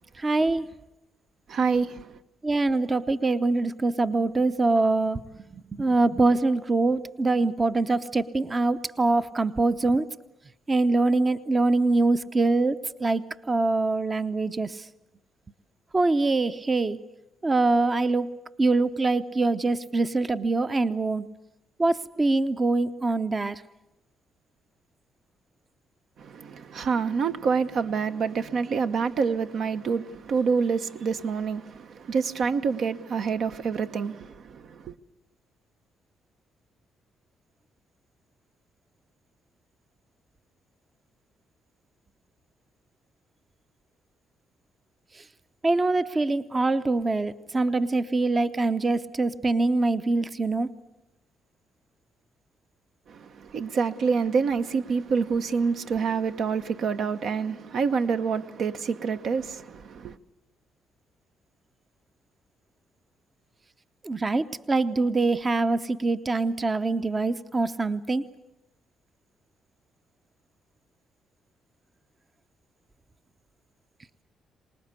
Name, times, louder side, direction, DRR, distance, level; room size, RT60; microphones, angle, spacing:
voice 1, 0.2-0.7 2.4-10.1 10.7-14.9 15.9-17.0 17.4-21.3 21.8-23.6 45.1-45.2 45.6-50.7 64.0-68.3, right 3 dB, 25° right, 0.7 m, -24 dB
voice 2, 1.5-2.2 26.2-34.9 53.1-60.2, right 5 dB, 65° right, 1.0 m, -27 dB
25.5 x 19.5 x 8.3 m
cardioid pair, 90°, 0 cm